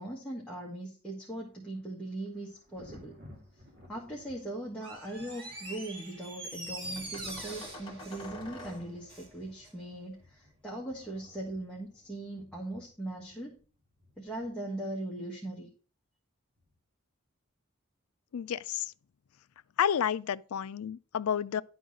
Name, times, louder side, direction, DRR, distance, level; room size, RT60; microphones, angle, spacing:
voice 1, 0.0-3.3 3.9-13.6 14.2-15.7, right 1 dB, 5° left, 1.4 m, -40 dB
Thunder, 1.3-14.9 16.6-16.8, left 1 dB, 45° right, 1.9 m, -58 dB
sound 1, 3.7-4.3 4.9-5.8 7.0-9.2 10.7-12.1, left 1 dB, 25° left, 1.9 m, -50 dB
Door, 4.7-9.3 9.6-9.7, right 1 dB, 25° right, 3.3 m, -43 dB
voice 2, 18.3-18.9 19.8-21.6, left 8 dB, 80° left, 0.4 m, -30 dB
11.0 x 3.9 x 6.2 m
head